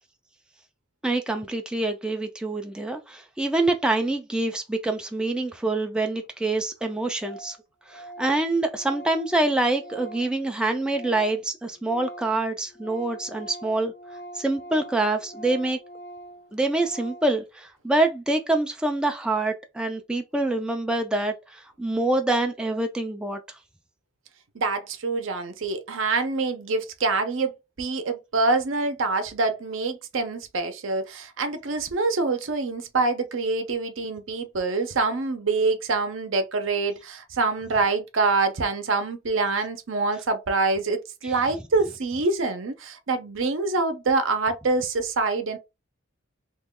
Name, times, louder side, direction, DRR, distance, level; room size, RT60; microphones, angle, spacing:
voice 1, 1.0-7.6 7.9-13.9 14.3-15.8 16.5-23.4 41.2-41.4, right 2 dB, 5° right, 0.3 m, -26 dB
Organ, 6.2-6.3 6.5-6.6 6.8-6.9 7.2-7.6 7.9-11.5 11.7-17.4, right 1 dB, 55° left, 0.6 m, -43 dB
voice 2, 24.5-27.5 27.8-45.6, right 3 dB, 70° right, 0.6 m, -25 dB
3.0 x 2.2 x 3.6 m
head